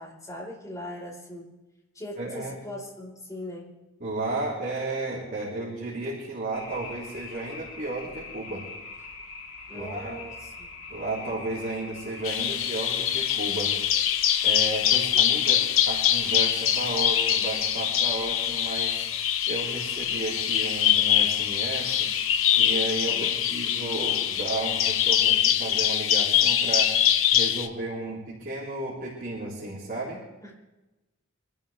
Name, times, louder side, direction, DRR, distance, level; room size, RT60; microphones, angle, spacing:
voice 1, 0.0-1.5 1.9-3.7 9.7-10.7 23.1-23.3 23.6-23.7 30.4-30.5, left 1 dB, 15° left, -4 dB, 4.9 m, -40 dB
voice 2, 2.2-2.5 4.0-8.7 9.7-10.2 10.9-13.7 14.4-19.0 19.5-22.1 22.6-26.9 27.3-30.2, right 2 dB, 45° right, -7 dB, 4.1 m, -33 dB
sound 1, 6.5-25.1, left 3 dB, 90° left, 3.2 m, -43 dB
Bird vocalization bird call bird song, 12.2-27.7, left 10 dB, 70° left, 0.9 m, -24 dB
25.5 x 13.5 x 3.5 m, 1.0 s
head